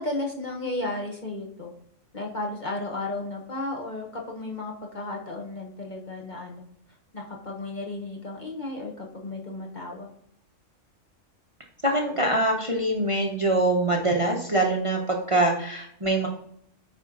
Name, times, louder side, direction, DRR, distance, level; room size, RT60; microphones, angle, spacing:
voice 1, 0.0-1.7 2.1-6.6 7.1-10.1, left 2 dB, 35° left, 0 dB, 1.2 m, -34 dB
voice 2, 11.8-16.3, right 1 dB, 25° right, 1 dB, 0.9 m, -24 dB
9.0 x 4.4 x 3.9 m, 0.70 s
omnidirectional pair, 1.4 m